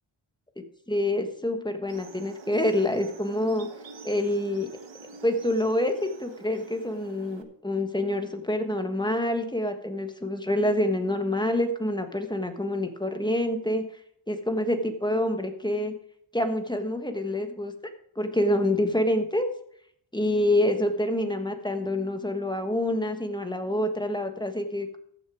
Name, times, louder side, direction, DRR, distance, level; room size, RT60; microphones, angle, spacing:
voice 1, 0.9-3.7 4.0-4.7 5.2-13.8 14.3-15.9 16.3-17.7 18.2-19.5 20.1-25.0, left 1 dB, 10° left, 6 dB, 1.4 m, -27 dB
sound 1, 1.9-7.4, right 5 dB, 65° right, 1.3 m, -47 dB
14.0 x 6.8 x 4.9 m, 0.70 s
wide cardioid pair, 75°, 48 cm